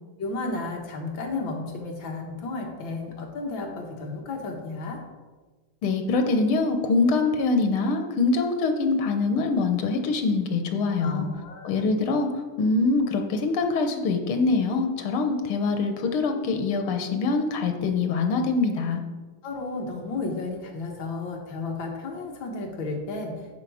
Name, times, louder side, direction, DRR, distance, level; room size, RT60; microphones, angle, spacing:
voice 1, 0.2-5.0 11.0-11.9 19.4-23.3, left 3 dB, 65° left, 1 dB, 2.0 m, -33 dB
voice 2, 5.8-11.3 11.6-12.3 12.6-19.0, left 3 dB, 90° left, 6 dB, 1.8 m, -24 dB
9.6 x 4.9 x 4.9 m, 1.3 s
omnidirectional pair, 2.3 m